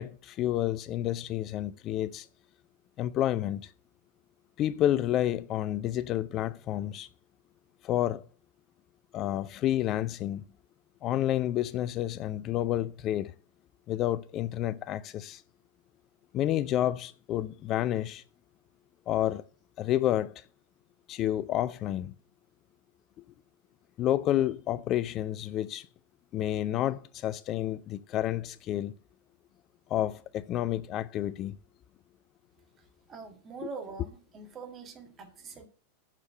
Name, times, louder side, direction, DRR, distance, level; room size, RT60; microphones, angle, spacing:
voice 1, 0.0-2.3 3.0-3.7 4.6-7.1 7.8-8.2 9.1-10.4 11.0-13.3 13.9-15.4 16.3-18.2 19.1-19.4 19.8-20.3 21.1-22.1 24.0-25.9 26.3-28.9 29.9-31.6, left 12 dB, 35° left, 0.4 m, -29 dB
voice 2, 32.8-35.7, right 4 dB, 25° right, 2.1 m, -44 dB
7.5 x 6.4 x 7.5 m
figure-of-eight pair, 90°, 0 cm